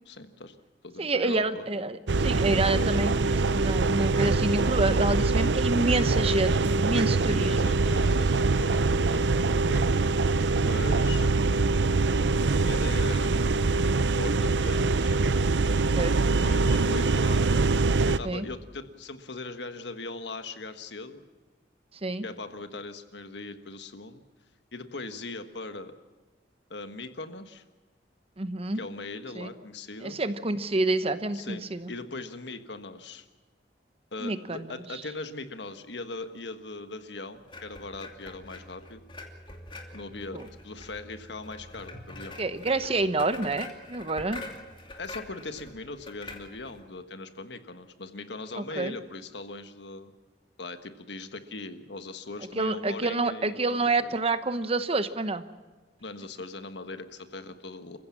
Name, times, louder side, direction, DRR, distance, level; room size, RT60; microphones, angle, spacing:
voice 1, 0.0-0.6 0.8-1.7 7.2-10.0 10.6-11.3 12.5-13.4 14.2-15.2 16.4-17.5 18.0-21.2 22.2-24.2 24.7-25.9 26.7-27.6 28.7-30.2 31.3-33.3 34.1-39.0 39.9-42.4 45.0-50.1 50.6-54.1 56.0-58.0, left 3 dB, 65° left, 9 dB, 1.5 m, -40 dB
voice 2, 1.0-7.7 15.9-16.1 18.2-18.5 22.0-22.3 28.4-28.8 29.4-29.5 30.0-31.9 34.2-34.7 40.3-40.4 42.4-44.4 48.6-49.0 52.6-55.4, right 2 dB, 35° right, 11 dB, 1.0 m, -28 dB
sound 1, 2.1-18.2, right 3 dB, 75° right, 0.6 m, -24 dB
sound 2, 4.3-13.1, left 1 dB, 50° left, 3.3 m, -48 dB
sound 3, 37.5-46.8, left 2 dB, 30° left, 2.7 m, -45 dB
28.5 x 15.5 x 7.3 m, 1.3 s
head